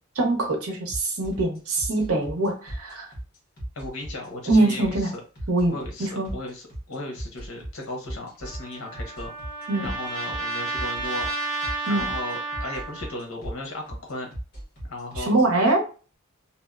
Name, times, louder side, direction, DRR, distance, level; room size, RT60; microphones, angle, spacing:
voice 1, 0.2-3.1 4.5-5.1 5.5-6.3 9.7-9.9 11.9-12.0 15.2-15.8, right 2 dB, 85° right, 2 dB, 0.8 m, -23 dB
sound 1, 0.9-15.2, right 1 dB, 45° left, 1.0 m, -36 dB
voice 2, 3.8-5.2 5.7-9.3 9.8-11.3 11.9-14.3 14.8-15.5, left 2 dB, 70° left, 2 dB, 0.9 m, -36 dB
Trumpet, 8.4-13.2, right 3 dB, 35° right, 0.6 m, -32 dB
2.7 x 2.0 x 2.3 m, 0.35 s
head